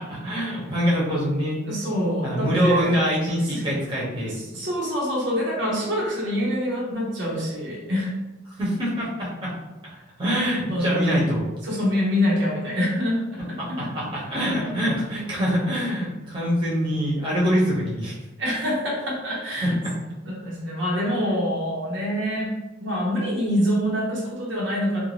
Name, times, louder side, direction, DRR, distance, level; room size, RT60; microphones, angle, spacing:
voice 1, 0.0-1.6 2.2-4.3 8.6-9.5 10.2-11.5 13.6-18.2 19.6-19.9, equal, 25° right, -7 dB, 0.9 m, -24 dB
voice 2, 1.7-3.0 3.5-3.6 4.2-8.1 10.7-11.1 11.6-14.8 15.9-16.0 18.4-19.8 20.2-22.5 22.8-25.0, equal, 70° right, -4 dB, 0.7 m, -26 dB
2.5 x 2.1 x 3.2 m, 1.1 s
head